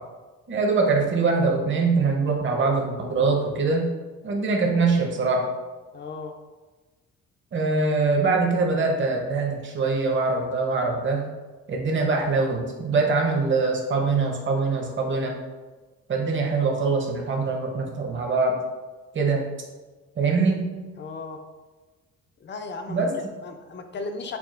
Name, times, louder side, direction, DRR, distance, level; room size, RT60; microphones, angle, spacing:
voice 1, 0.5-3.9 4.2-5.5 7.5-11.2 11.7-15.4 16.1-18.6 19.1-19.4 20.2-20.7 22.9-23.1, right 4 dB, 40° right, 1 dB, 0.8 m, -23 dB
voice 2, 5.9-6.4 21.0-21.4 22.4-24.4, left 3 dB, 40° left, 6 dB, 0.5 m, -36 dB
5.7 x 2.4 x 2.4 m, 1.3 s
cardioid pair, 90°, 30 cm